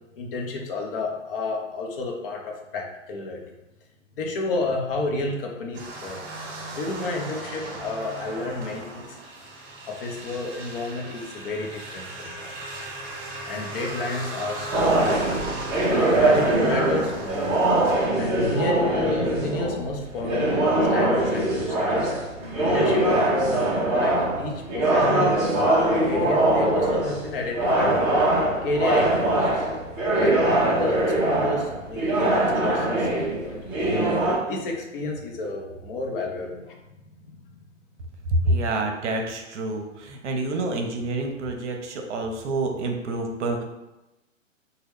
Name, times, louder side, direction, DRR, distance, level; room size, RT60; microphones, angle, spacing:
voice 1, 0.2-3.5 4.2-6.2 6.7-9.2 9.9-12.6 13.4-15.2 15.9-17.6 18.1-20.5 20.9-22.1 22.6-23.6 23.9-27.9 28.6-29.8 30.1-36.7 37.1-37.4, left 2 dB, 45° left, 0 dB, 0.7 m, -31 dB
sound 1, 5.7-18.1, right 2 dB, 45° right, 1.0 m, -37 dB
sound 2, 14.7-34.3, right 1 dB, 10° right, 0.4 m, -22 dB
voice 2, 38.4-43.6, right 2 dB, 65° right, 3 dB, 0.7 m, -28 dB
3.1 x 2.2 x 3.5 m, 0.98 s
hypercardioid pair, 130°, 39 cm